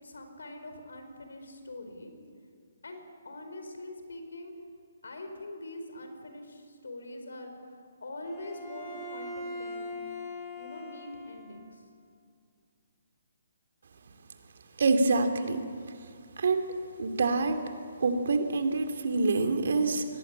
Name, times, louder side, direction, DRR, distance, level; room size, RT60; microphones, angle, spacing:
voice 1, 0.0-2.1 2.8-4.5 5.0-10.0 10.6-11.8, left 1 dB, 75° left, 6 dB, 4.7 m, -43 dB
Bowed string instrument, 8.3-11.7, left 2 dB, 20° left, 5.3 m, -41 dB
voice 2, 14.8-15.6 16.4-16.6 17.0-17.7 18.0-20.1, right 3 dB, 60° right, 7 dB, 2.5 m, -26 dB
23.0 x 18.0 x 8.7 m, 2.2 s
figure-of-eight pair, 140°, 0 cm